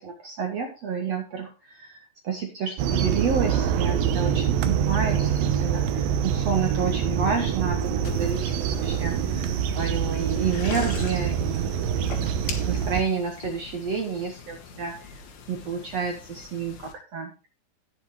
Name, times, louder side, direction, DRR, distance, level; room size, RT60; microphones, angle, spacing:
voice 1, 0.0-8.5 8.8-11.6 12.7-15.1 15.5-17.5, right 6 dB, 65° right, 3 dB, 1.7 m, -30 dB
sound 1, 2.8-13.0, right 8 dB, 80° right, 2.0 m, -25 dB
sound 2, 8.0-16.9, left 6 dB, 60° left, 3.3 m, -41 dB
18.0 x 6.6 x 3.2 m, 0.29 s
omnidirectional pair, 5.4 m